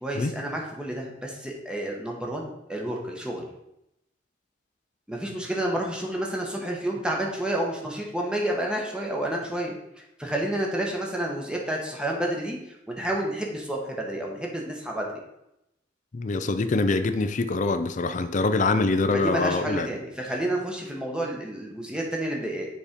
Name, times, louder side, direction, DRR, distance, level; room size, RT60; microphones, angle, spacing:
voice 1, 0.0-3.5 5.1-9.8 10.2-15.2 19.2-22.7, right 1 dB, 5° right, 1.2 m, -30 dB
voice 2, 16.1-19.9, left 3 dB, 45° left, 0.5 m, -24 dB
7.1 x 4.3 x 5.1 m
head